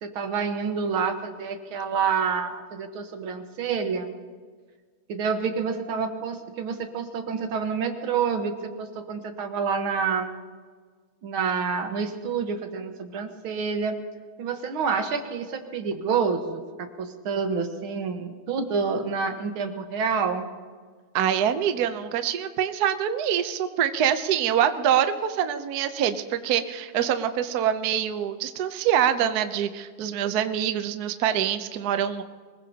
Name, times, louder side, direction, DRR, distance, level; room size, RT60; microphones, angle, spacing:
voice 1, 0.0-4.1 5.1-10.4 11.2-14.0 14.4-20.5, right 5 dB, 85° right, 6 dB, 2.1 m, -28 dB
voice 2, 21.1-32.2, right 9 dB, 60° right, 9 dB, 1.1 m, -25 dB
24.0 x 21.0 x 2.9 m, 1.6 s
omnidirectional pair, 2.2 m